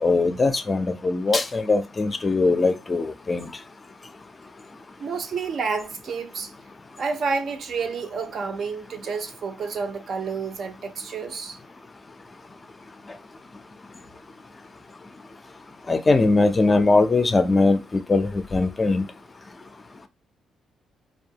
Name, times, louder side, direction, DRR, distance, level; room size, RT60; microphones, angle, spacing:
voice 1, 0.0-3.5 15.9-19.1, left 3 dB, 25° left, 0.4 m, -21 dB
voice 2, 5.0-6.5 7.0-11.6, right 5 dB, 55° right, 0.5 m, -29 dB
2.5 x 2.3 x 2.7 m
cardioid pair, 90°, 0 cm